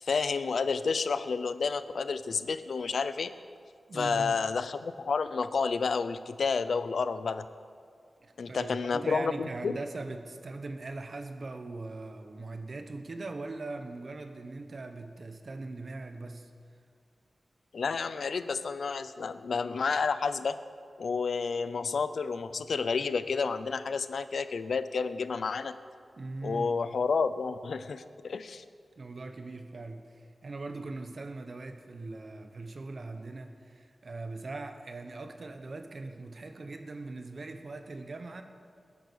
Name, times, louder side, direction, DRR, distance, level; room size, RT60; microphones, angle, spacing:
voice 1, 0.0-3.3 3.9-7.4 8.4-9.8 17.7-20.6 21.0-25.7 26.4-28.6, left 5 dB, 75° left, 13 dB, 0.6 m, -30 dB
voice 2, 3.9-4.4 8.2-16.5 26.2-26.8 29.0-38.4, right 3 dB, 50° right, 7 dB, 1.2 m, -40 dB
20.5 x 10.5 x 6.4 m, 2.2 s
wide cardioid pair, 130°, 0 cm